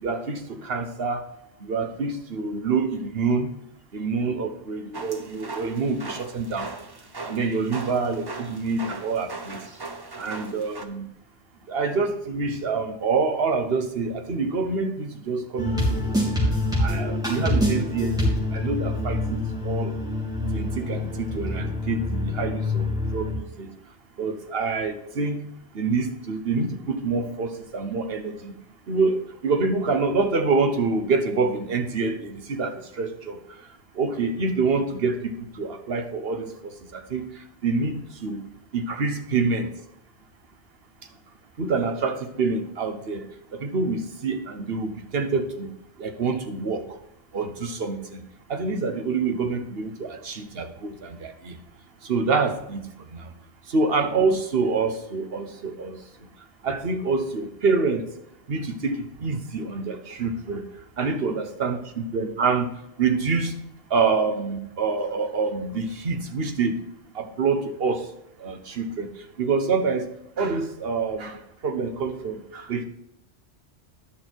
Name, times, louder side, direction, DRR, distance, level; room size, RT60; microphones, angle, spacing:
voice 1, 0.0-1.2 1.6-3.5 3.9-6.8 7.2-9.6 10.2-11.1 11.7-16.2 16.8-19.9 20.5-23.3 23.6-23.7 24.2-25.4 25.7-28.5 28.9-33.4 34.0-37.3 37.6-38.4 38.7-39.7 41.6-43.3 43.5-45.7 46.0-46.9 47.3-48.2 48.5-51.5 52.0-52.8 53.1-53.2 53.7-56.0 56.6-58.1 58.5-60.6 61.0-62.7 63.0-63.5 63.9-66.8 67.1-68.0 68.4-69.1 69.4-70.1 70.4-71.4 71.6-72.8, right 4 dB, 60° right, 7 dB, 1.2 m, -26 dB
sound 1, 4.9-10.8, right 3 dB, 25° right, 0.6 m, -39 dB
sound 2, 15.6-23.4, left 1 dB, 5° right, 3.1 m, -26 dB
10.5 x 6.3 x 4.5 m, 0.79 s
omnidirectional pair, 1.2 m